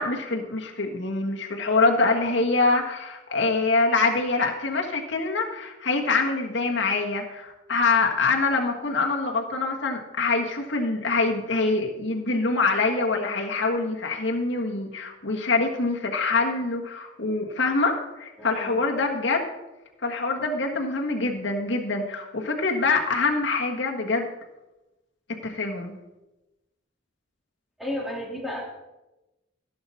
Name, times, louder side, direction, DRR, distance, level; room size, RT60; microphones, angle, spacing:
voice 1, 0.0-19.5 20.0-24.3 25.4-25.9, left 3 dB, 65° left, 1 dB, 1.5 m, -25 dB
voice 2, 18.4-18.8 27.8-28.6, left 1 dB, ahead, -3 dB, 2.7 m, -32 dB
16.0 x 7.8 x 4.2 m, 1.0 s
head